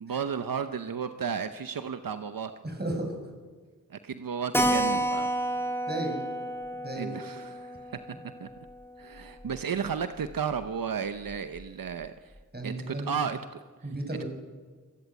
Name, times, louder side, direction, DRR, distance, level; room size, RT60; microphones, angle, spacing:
voice 1, 0.0-2.5 3.9-5.3 7.0-8.0 8.4-8.5 9.0-12.1 12.6-13.4, right 6 dB, 85° right, 9 dB, 0.9 m, -33 dB
voice 2, 2.6-3.1 5.9-6.2 6.7-7.1 12.5-13.1 13.8-14.3, right 1 dB, 30° right, 4 dB, 6.5 m, -34 dB
Keyboard (musical), 4.5-9.6 9.9-10.0 10.2-10.3 10.6-10.7 11.3-11.6, right 1 dB, 5° left, 3.5 m, -31 dB
25.0 x 20.0 x 8.3 m, 1.4 s
wide cardioid pair, 70°, 33 cm